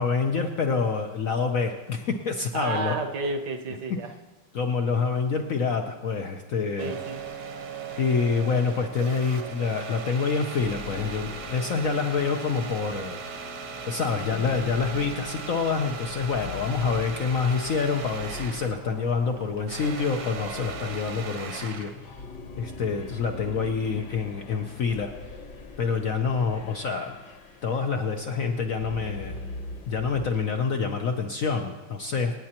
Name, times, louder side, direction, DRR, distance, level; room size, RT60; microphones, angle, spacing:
voice 1, 0.0-3.0 4.5-6.9 8.0-13.2 13.8-22.2 22.6-25.4 25.8-27.4 27.6-29.4 29.9-32.3, left 5 dB, 75° left, 5 dB, 0.7 m, -27 dB
voice 2, 2.5-4.1 6.8-7.2, right 3 dB, 60° right, 6 dB, 1.3 m, -31 dB
sound 1, 6.8-18.8 19.1-22.0, right 5 dB, 75° right, 2.1 m, -38 dB
sound 2, 10.6-30.3, left 3 dB, 55° left, 1.6 m, -43 dB
26.5 x 9.6 x 2.9 m, 1.2 s
omnidirectional pair, 2.4 m